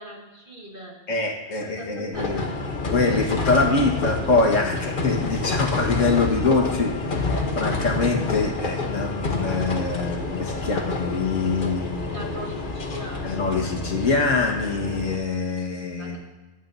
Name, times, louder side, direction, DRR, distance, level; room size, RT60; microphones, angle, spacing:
voice 1, 0.0-1.0 1.5-2.6 12.0-13.4 16.0-16.2, equal, 45° right, -2 dB, 2.0 m, -40 dB
voice 2, 1.1-2.4 2.9-12.2 13.2-16.2, left 3 dB, 80° left, 1 dB, 1.9 m, -24 dB
sound 1, 2.1-15.2, left 3 dB, 45° left, 1.2 m, -28 dB
22.5 x 8.5 x 2.7 m, 1.2 s
omnidirectional pair, 1.3 m